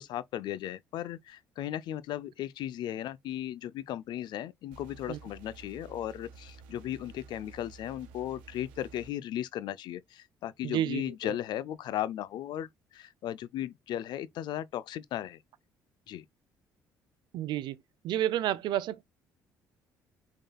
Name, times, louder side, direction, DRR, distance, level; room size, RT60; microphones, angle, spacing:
voice 1, 0.0-15.4 16.1-16.3, left 12 dB, 65° left, 0.5 m, -36 dB
sound 1, 4.7-9.1, right 5 dB, 90° right, 1.0 m, -51 dB
voice 2, 10.6-11.3 17.3-17.8 18.0-19.0, right 12 dB, 70° right, 0.6 m, -30 dB
5.4 x 3.7 x 2.2 m
supercardioid pair, 70°, 8 cm